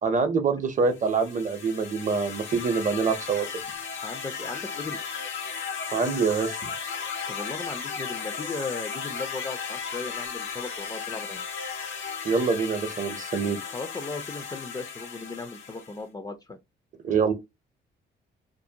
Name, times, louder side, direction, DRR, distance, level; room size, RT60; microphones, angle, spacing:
voice 1, 0.0-3.6 5.9-6.6 12.2-13.6 17.0-17.3, right 5 dB, 40° right, 0.6 m, -25 dB
sound 1, 0.9-16.0, left 6 dB, 80° left, 0.7 m, -35 dB
voice 2, 4.0-5.0 7.3-11.4 13.7-16.6, left 3 dB, 20° left, 0.4 m, -37 dB
2.5 x 2.1 x 2.7 m
cardioid pair, 90°, 20 cm